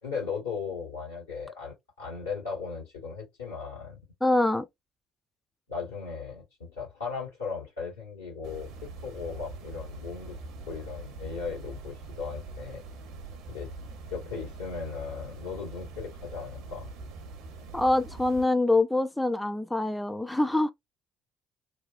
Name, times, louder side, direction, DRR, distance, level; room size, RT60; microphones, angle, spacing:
voice 1, 0.0-4.0 5.7-10.4 10.7-12.8 13.5-13.7 14.1-16.9, left 5 dB, 85° left, 1.4 m, -37 dB
voice 2, 4.2-4.7 17.7-20.7, left 2 dB, 5° left, 0.3 m, -25 dB
sound 1, 8.4-18.4, right 3 dB, 65° right, 0.6 m, -43 dB
2.7 x 2.0 x 2.4 m
figure-of-eight pair, 50°, 0 cm